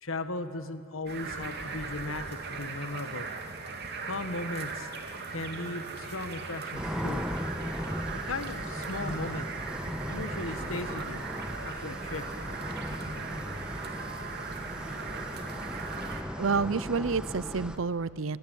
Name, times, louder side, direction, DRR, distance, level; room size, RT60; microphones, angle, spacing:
voice 1, 0.0-3.3 4.0-4.9 5.3-7.2 8.1-9.5 10.1-11.3 11.6-12.3, left 2 dB, 80° left, 10 dB, 1.7 m, -37 dB
sound 1, 1.1-16.2, right 4 dB, 55° right, 2.8 m, -39 dB
sound 2, 6.7-17.8, equal, 5° right, 1.8 m, -37 dB
voice 2, 16.4-18.4, right 4 dB, 70° right, 19 dB, 0.7 m, -29 dB
28.0 x 22.0 x 9.3 m, 2.3 s
head